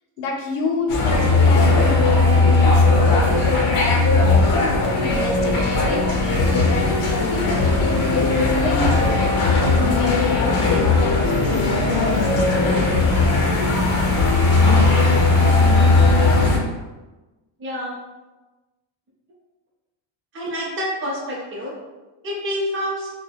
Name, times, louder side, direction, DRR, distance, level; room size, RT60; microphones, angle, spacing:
voice 1, 0.2-3.1 5.0-7.8 8.1-9.3 9.8-12.9, left 4 dB, 80° left, 2 dB, 0.6 m, -28 dB
sound 1, 0.9-16.6, left 3 dB, 45° left, 0.7 m, -17 dB
voice 2, 15.9-16.5 17.6-17.9 20.3-21.7 22.2-23.1, equal, 25° right, -4 dB, 0.6 m, -28 dB
3.2 x 2.1 x 2.3 m, 1.2 s
cardioid pair, 155°, 50 cm